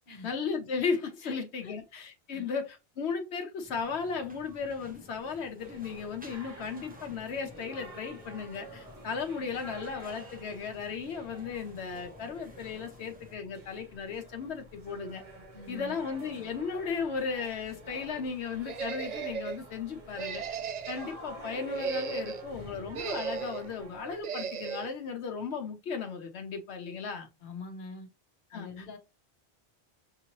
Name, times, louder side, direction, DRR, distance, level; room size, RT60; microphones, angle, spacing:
voice 1, 0.2-15.2 15.7-20.6 20.9-27.3 28.5-28.8, left 5 dB, 85° left, 1.0 m, -35 dB
sound 1, 3.6-13.4, left 1 dB, 10° right, 0.7 m, -55 dB
sound 2, 5.6-24.2, right 1 dB, 35° right, 1.3 m, -49 dB
voice 2, 15.5-16.0 27.4-28.1 28.5-29.0, left 3 dB, 55° left, 1.1 m, -44 dB
sound 3, 18.7-19.6 20.1-21.1 21.6-22.5 22.9-23.7 24.2-24.9, right 6 dB, 55° right, 0.5 m, -36 dB
6.0 x 2.8 x 2.9 m
omnidirectional pair, 1.1 m